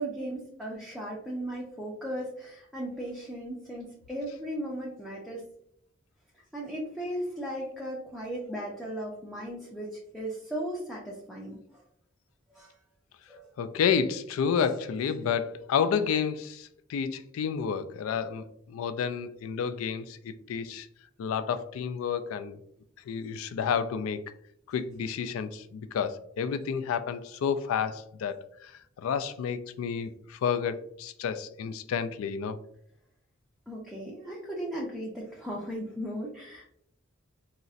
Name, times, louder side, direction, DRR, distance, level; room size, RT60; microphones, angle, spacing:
voice 1, 0.0-5.4 6.5-11.6 12.5-12.7 13.3-13.5 33.7-36.6, right 1 dB, ahead, -5 dB, 0.4 m, -36 dB
voice 2, 13.6-20.9 21.2-22.6 23.1-24.2 24.7-32.6, left 7 dB, 80° left, 13 dB, 0.3 m, -30 dB
3.9 x 2.0 x 2.4 m, 0.69 s
head